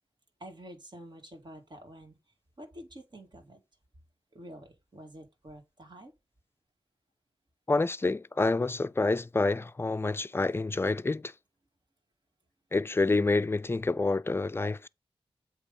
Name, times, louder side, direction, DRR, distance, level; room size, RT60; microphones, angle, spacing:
voice 1, 0.4-2.2 2.6-3.6 4.3-6.1, equal, 50° right, 2.2 m, -48 dB
voice 2, 7.7-11.3 12.7-14.9, left 3 dB, 25° left, 0.4 m, -28 dB
8.0 x 2.9 x 5.4 m
cardioid pair, 50°, 10 cm